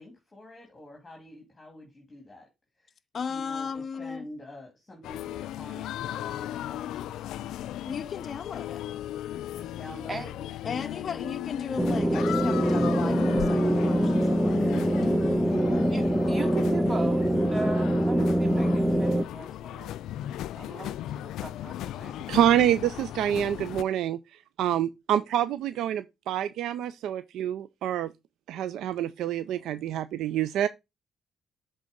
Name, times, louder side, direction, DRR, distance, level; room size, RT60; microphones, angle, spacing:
voice 1, 0.0-2.5 2.8-2.9 3.3-7.5 9.6-11.4 15.5-15.9, left 1 dB, 20° left, 2.7 m, -47 dB
voice 2, 3.1-4.3 7.9-8.8 10.6-14.9, left 6 dB, 45° left, 0.6 m, -36 dB
sound 1, 5.0-23.8, left 13 dB, 85° left, 0.3 m, -36 dB
sound 2, 11.8-19.2, right 1 dB, 10° right, 0.5 m, -24 dB
voice 3, 15.9-19.9 20.6-22.4, right 3 dB, 30° right, 3.0 m, -38 dB
voice 4, 22.3-28.1 28.5-30.7, right 11 dB, 85° right, 0.4 m, -27 dB
7.8 x 3.7 x 5.2 m
cardioid pair, 90°, 0 cm